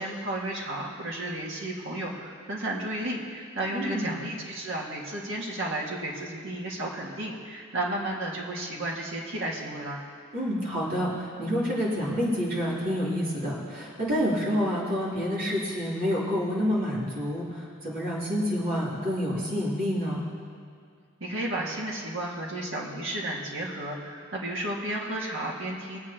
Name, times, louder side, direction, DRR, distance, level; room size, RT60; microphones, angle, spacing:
voice 1, 0.0-10.0 21.2-26.0, right 1 dB, 60° right, -3 dB, 2.0 m, -33 dB
voice 2, 3.7-4.1 10.3-20.3, equal, 40° right, -7 dB, 3.2 m, -28 dB
23.5 x 8.6 x 3.0 m, 2.2 s
head